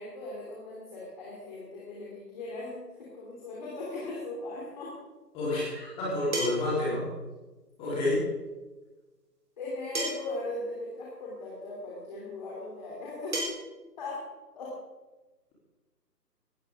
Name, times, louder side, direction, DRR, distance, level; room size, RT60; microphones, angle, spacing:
voice 1, 0.0-4.9 7.8-8.1 9.6-13.4 14.0-14.2 14.5-14.7, left 2 dB, 25° left, -5 dB, 3.2 m, -39 dB
sound 1, 4.6-4.7 6.3-6.8 8.3-8.4 9.9-10.4 11.6-11.7 13.3-13.4, right 1 dB, 45° right, 4.5 m, -32 dB
voice 2, 5.3-7.1 7.8-8.2, left 1 dB, 10° left, -8 dB, 3.8 m, -29 dB
19.0 x 14.0 x 3.8 m, 1.2 s
figure-of-eight pair, 155°, 49 cm